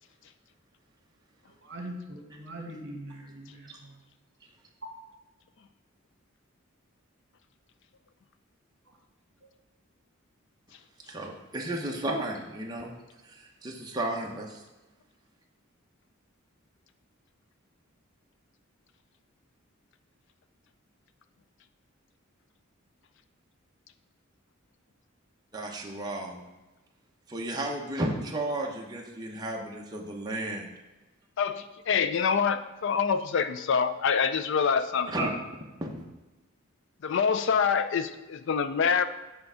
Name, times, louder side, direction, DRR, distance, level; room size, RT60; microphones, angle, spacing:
voice 1, 1.5-4.0 4.8-4.9 9.4-9.5, right 1 dB, 55° right, 0 dB, 1.7 m, -42 dB
voice 2, 11.1-12.9 13.3-14.6 25.5-26.5 27.3-30.7 35.1-35.3 35.8-36.1, right 1 dB, 20° right, -1 dB, 0.8 m, -33 dB
voice 3, 31.4-35.1 37.0-39.0, left 6 dB, 60° left, 12 dB, 0.4 m, -26 dB
7.8 x 3.5 x 5.6 m, 1.1 s
head